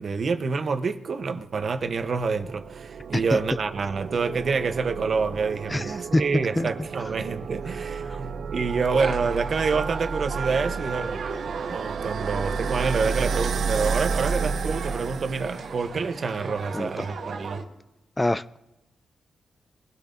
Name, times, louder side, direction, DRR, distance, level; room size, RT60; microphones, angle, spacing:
voice 1, 0.0-11.2 11.7-17.6, right 4 dB, 45° right, 0.9 m, -27 dB
sound 1, 1.8-15.9, right 5 dB, 65° right, 0.4 m, -31 dB
voice 2, 5.7-6.7 8.1-8.2 16.7-17.1 18.2-18.6, left 1 dB, 15° left, 0.3 m, -26 dB
sound 2, 8.9-17.6, right 4 dB, 85° right, 2.3 m, -38 dB
22.5 x 12.0 x 2.6 m
wide cardioid pair, 130°, 0 cm